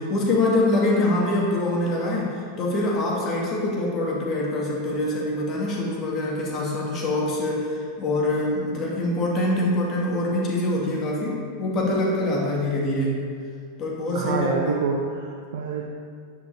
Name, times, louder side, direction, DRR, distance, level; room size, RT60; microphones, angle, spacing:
voice 1, 0.0-13.2 13.8-14.8, left 1 dB, 30° left, -3 dB, 2.8 m, -24 dB
voice 2, 14.1-15.9, right 5 dB, 55° right, 1 dB, 1.0 m, -27 dB
10.0 x 10.0 x 4.2 m, 2.2 s
figure-of-eight pair, 90°, 0 cm